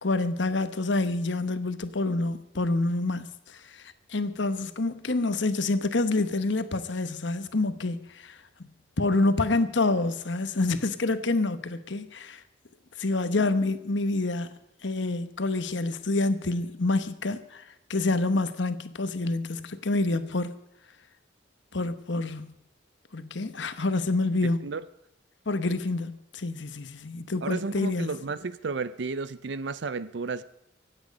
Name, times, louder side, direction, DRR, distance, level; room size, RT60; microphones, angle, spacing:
voice 1, 0.0-8.4 9.0-12.4 13.0-14.5 14.8-17.6 17.9-20.5 21.7-22.5 23.1-24.7 25.5-28.1, left 2 dB, 65° left, 1.0 m, -27 dB
voice 2, 27.4-30.4, right 4 dB, 60° right, 0.5 m, -32 dB
24.0 x 8.9 x 5.3 m
head